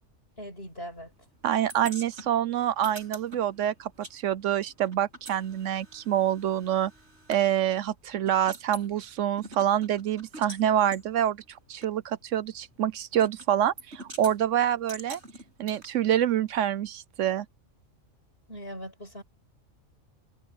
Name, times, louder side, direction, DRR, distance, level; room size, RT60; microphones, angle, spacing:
voice 1, 0.4-1.1 18.5-19.2, equal, 50° left, 8.0 m, -40 dB
voice 2, 1.4-6.9 7.3-15.2 15.6-17.5, right 10 dB, 75° right, 1.0 m, -26 dB
sound 1, 1.7-4.2 4.4-7.4 7.9-8.0 8.3-8.9 9.4-10.6 10.9-11.0 11.8-11.9 13.2-13.5 13.8-14.4 14.9-15.9, right 1 dB, 60° right, 6.9 m, -45 dB
omnidirectional pair, 1.3 m